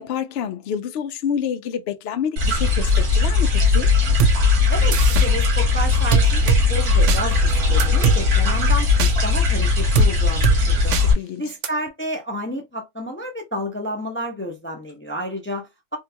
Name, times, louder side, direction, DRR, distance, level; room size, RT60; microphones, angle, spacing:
voice 1, 0.0-3.9 11.0-11.5, left 8 dB, 70° left, 0.6 m, -28 dB
sound 1, 2.4-11.1, left 4 dB, 85° right, 1.8 m, -18 dB
sound 2, 4.2-4.3 4.9-5.3 6.1-6.6 7.1-7.2 7.8-8.2 9.0-9.1 9.9-10.1 10.4-10.6 10.9-11.0 11.6-11.7, right 7 dB, 65° right, 0.8 m, -19 dB
voice 2, 4.7-7.4 7.7-8.9 9.2-10.9 11.4-16.0, equal, 20° left, 0.3 m, -30 dB
3.7 x 2.3 x 2.7 m
omnidirectional pair, 1.5 m